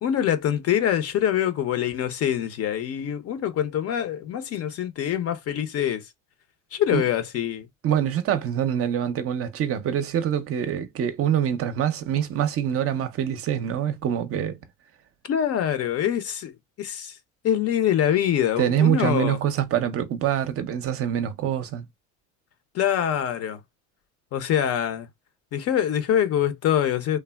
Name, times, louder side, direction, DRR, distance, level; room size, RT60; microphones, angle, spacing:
voice 1, 0.0-6.0 6.7-7.7 15.3-16.5 16.8-17.1 17.4-19.4 22.7-23.6 24.3-25.1 25.5-27.2, left 10 dB, 45° left, 0.6 m, -24 dB
voice 2, 7.8-14.6 18.6-21.9, right 9 dB, 45° right, 0.6 m, -25 dB
3.3 x 2.1 x 2.2 m
supercardioid pair, 100°, 33 cm